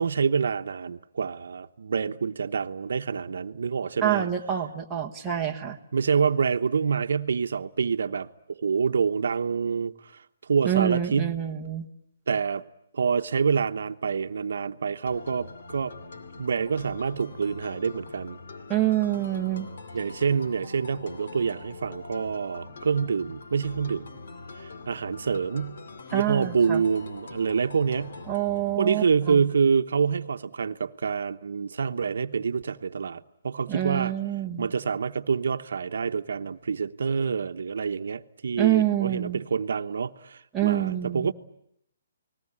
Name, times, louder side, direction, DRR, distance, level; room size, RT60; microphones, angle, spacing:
voice 1, 0.0-4.3 5.9-10.1 10.4-11.4 12.3-12.6 12.9-15.9 16.4-18.4 19.9-24.1 24.9-25.8 26.1-28.2 28.8-34.1 34.6-41.3, right 6 dB, 70° right, 1.0 m, -27 dB
voice 2, 4.0-5.8 10.6-11.9 18.7-19.7 26.1-26.8 28.3-29.4 33.7-34.7 38.6-39.4 40.5-41.3, right 12 dB, 5° right, 1.3 m, -26 dB
sound 1, 15.1-28.8, left 3 dB, 55° left, 2.4 m, -43 dB
29.5 x 20.0 x 9.9 m
hypercardioid pair, 175°, 0 cm